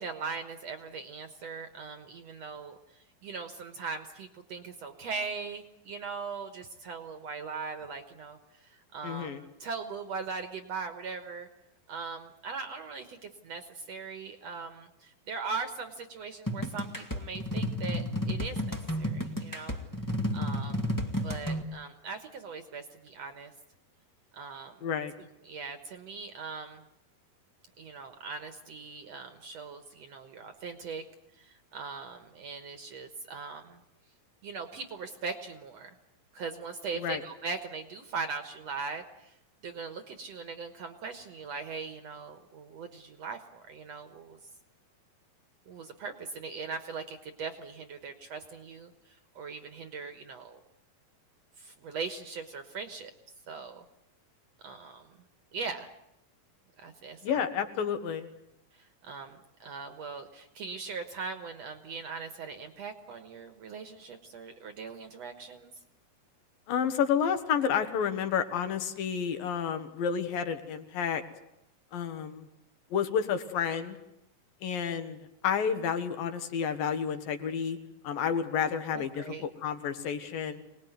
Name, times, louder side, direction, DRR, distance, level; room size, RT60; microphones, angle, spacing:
voice 1, 0.0-2.8 3.2-8.4 8.7-11.5 11.9-19.8 20.3-21.0 21.2-23.5 24.3-24.7 25.4-26.8 27.8-31.0 31.4-33.8 34.4-35.9 36.3-39.3 39.6-44.4 45.7-48.9 49.4-50.6 51.6-53.1 53.5-53.8 54.6-55.1 55.5-55.9 56.8-57.4 59.0-65.7 78.9-79.4, right 4 dB, 60° right, 8 dB, 2.1 m, -40 dB
voice 2, 9.0-9.4 24.8-25.1 36.9-37.2 57.2-58.3 66.7-71.2 71.9-72.5 72.9-74.0 74.6-77.8 78.0-79.3 79.6-80.6, left 7 dB, 75° left, 8 dB, 3.2 m, -30 dB
sound 1, 16.5-21.6, equal, 25° left, 0.4 m, -32 dB
25.5 x 19.5 x 9.5 m, 0.85 s
omnidirectional pair, 4.2 m